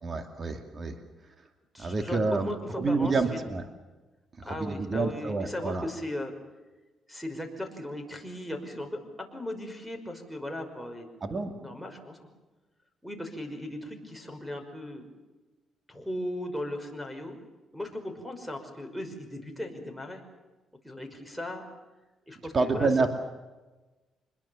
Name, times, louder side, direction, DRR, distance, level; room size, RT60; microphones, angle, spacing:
voice 1, 0.0-1.0 1.8-2.5 2.8-3.7 4.5-5.9 11.2-11.5 22.5-23.1, right 3 dB, 40° right, 6 dB, 2.5 m, -28 dB
voice 2, 1.7-3.6 4.5-6.3 7.1-11.1 11.4-12.2 13.0-15.1 15.9-17.4 17.7-20.2 20.8-21.6 22.3-23.1, left 1 dB, ahead, 7 dB, 5.6 m, -37 dB
26.0 x 21.5 x 7.2 m, 1.2 s
cardioid pair, 90°, 0 cm